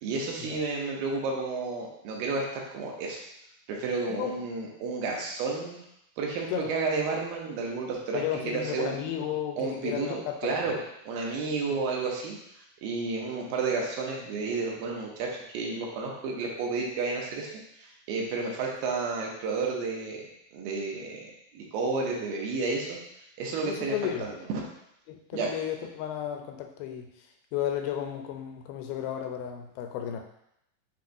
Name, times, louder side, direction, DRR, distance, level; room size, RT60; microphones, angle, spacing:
voice 1, 0.0-3.2 3.7-5.8 6.2-8.9 9.6-10.1 10.4-10.8 11.1-12.4 12.8-15.3 15.5-17.5 17.8-20.3 20.5-21.2 21.5-23.0 23.4-23.9 24.2-24.3 25.3-25.5, right 4 dB, 80° right, -1 dB, 2.5 m, -31 dB
voice 2, 8.1-10.5 11.7-11.8 23.6-24.3 25.1-30.2, left 10 dB, 90° left, 4 dB, 2.5 m, -33 dB
7.2 x 2.8 x 2.6 m, 0.78 s
omnidirectional pair, 4.2 m